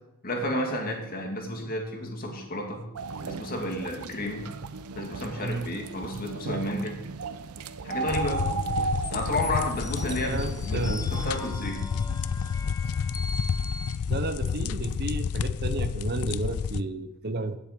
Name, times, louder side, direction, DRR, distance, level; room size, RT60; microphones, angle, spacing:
voice 1, 0.2-2.8 3.3-4.5 4.9-6.9 7.8-8.5 9.1-11.8, left 1 dB, 40° left, 1 dB, 2.5 m, -31 dB
sound 1, 3.0-11.5, right 4 dB, 85° right, 0.7 m, -35 dB
sound 2, 8.1-16.8, left 6 dB, 80° left, 0.4 m, -30 dB
sound 3, 9.0-14.0, left 3 dB, 15° left, 0.6 m, -41 dB
voice 2, 10.2-11.1 14.1-17.6, right 2 dB, 45° right, 11 dB, 0.7 m, -32 dB
15.5 x 7.3 x 5.1 m, 0.90 s
head